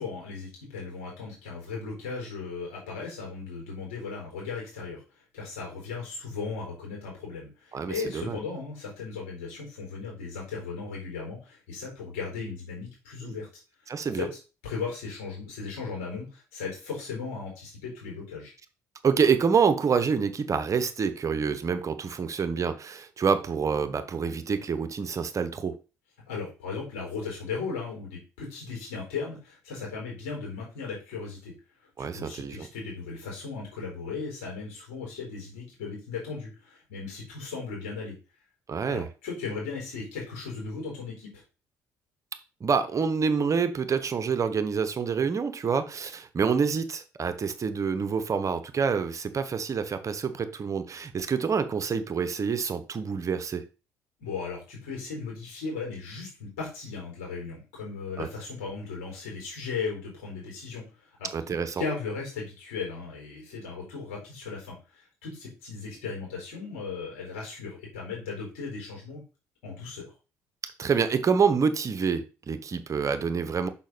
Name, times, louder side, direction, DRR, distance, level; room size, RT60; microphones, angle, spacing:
voice 1, 0.0-5.0 5.3-13.5 14.0-14.3 14.6-18.5 26.3-31.5 32.0-38.1 38.8-41.4 54.2-69.2 69.6-70.1, left 4 dB, 75° left, 4.5 m, -37 dB
voice 2, 7.7-8.4 13.2-13.4 13.9-14.3 19.0-25.8 32.0-32.7 38.7-39.1 42.6-53.6 58.2-58.3 61.3-61.8 70.6-73.7, right 6 dB, 40° right, 0.9 m, -27 dB
6.2 x 5.8 x 4.1 m
hypercardioid pair, 50°, 8 cm